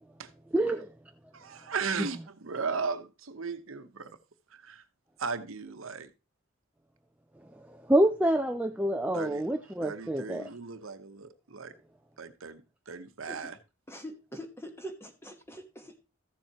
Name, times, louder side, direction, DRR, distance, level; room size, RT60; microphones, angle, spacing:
voice 1, 0.5-0.9 7.9-10.5, right 1 dB, 5° right, 0.4 m, -26 dB
voice 2, 1.3-4.2 4.5-4.8 5.2-6.1 9.1-9.5 9.8-11.7 12.2-12.6 12.9-13.6, right 5 dB, 80° right, 0.9 m, -36 dB
voice 3, 13.9-16.0, equal, 10° left, 1.2 m, -44 dB
14.0 x 7.3 x 2.9 m
head